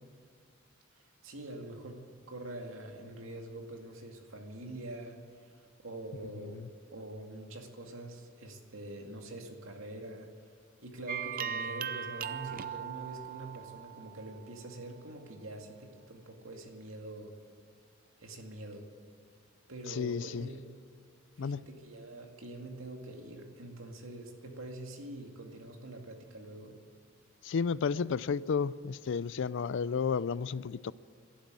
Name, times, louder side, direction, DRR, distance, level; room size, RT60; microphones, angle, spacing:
voice 1, 1.2-6.6 6.9-10.3 10.8-17.4 18.2-18.9 19.7-20.7 21.4-26.8, right 1 dB, 80° right, 2.2 m, -45 dB
sound 1, 11.1-14.6, right 8 dB, 45° right, 0.6 m, -39 dB
voice 2, 19.9-20.5 21.4-21.6 27.4-30.9, left 6 dB, 65° left, 0.4 m, -32 dB
12.5 x 11.5 x 9.7 m
head